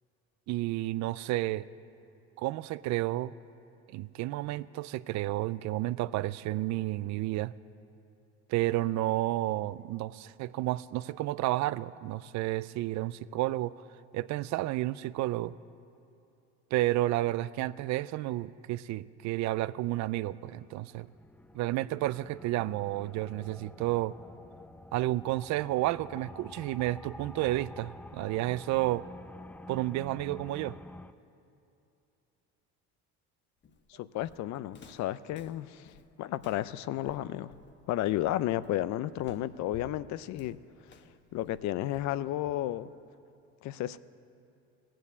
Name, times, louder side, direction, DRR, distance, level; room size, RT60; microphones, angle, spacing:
voice 1, 0.5-1.7 2.4-3.3 3.9-7.5 8.5-13.8 14.1-15.5 16.7-21.1 21.5-24.2 24.9-29.0 29.7-30.8, right 16 dB, 65° right, 17 dB, 0.5 m, -31 dB
sound 1, 20.5-31.1, left 1 dB, 5° left, 0.3 m, -48 dB
Walk footsteps, 33.6-42.9, left 5 dB, 35° left, 1.1 m, -54 dB
voice 2, 33.9-35.9 36.2-37.5 37.9-40.6 41.3-42.9 43.6-44.0, left 14 dB, 65° left, 16 dB, 0.5 m, -32 dB
18.0 x 7.7 x 8.1 m, 2.6 s
cardioid pair, 95°, 30 cm